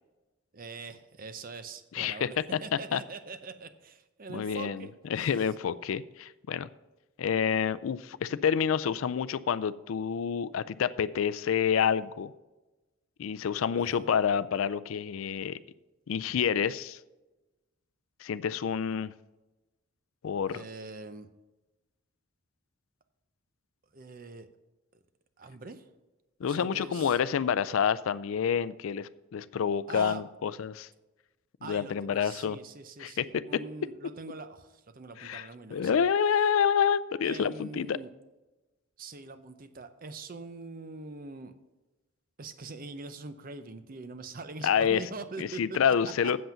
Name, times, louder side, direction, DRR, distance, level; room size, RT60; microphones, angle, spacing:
voice 1, 0.5-4.9 5.2-5.3 13.9-14.1 20.5-21.3 23.9-24.5 25.4-25.8 26.4-27.2 29.9-30.2 31.6-36.1 37.2-38.1 39.0-41.5 42.4-45.6 45.9-46.0 46.2-46.4, right 3 dB, 40° right, 11 dB, 0.6 m, -43 dB
voice 2, 1.9-2.3 2.9-3.0 4.3-6.7 7.2-12.3 13.2-15.6 16.1-17.0 18.2-19.1 20.2-20.6 26.4-30.9 31.6-32.6 33.0-33.4 35.2-38.0 44.6-45.0 45.4-46.4, left 7 dB, 75° left, 16 dB, 0.4 m, -28 dB
7.9 x 7.5 x 5.7 m, 1.1 s
head